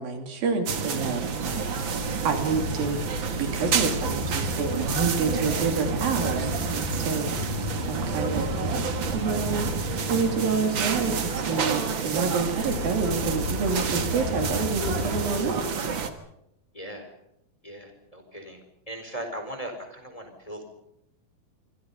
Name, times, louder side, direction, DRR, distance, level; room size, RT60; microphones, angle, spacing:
voice 1, 0.0-1.7 2.2-3.0 3.4-8.8 9.1-9.7 10.0-15.6, right 5 dB, 80° right, 5 dB, 4.7 m, -28 dB
sound 1, 0.7-16.1, right 6 dB, 45° right, 1.8 m, -29 dB
sound 2, 1.5-15.4, left 4 dB, 80° left, 5.5 m, -35 dB
voice 2, 8.3-8.6 16.7-17.1 17.6-18.6 18.9-20.6, right 1 dB, 10° left, 5 dB, 4.1 m, -39 dB
26.0 x 25.0 x 5.5 m, 0.80 s
omnidirectional pair, 4.0 m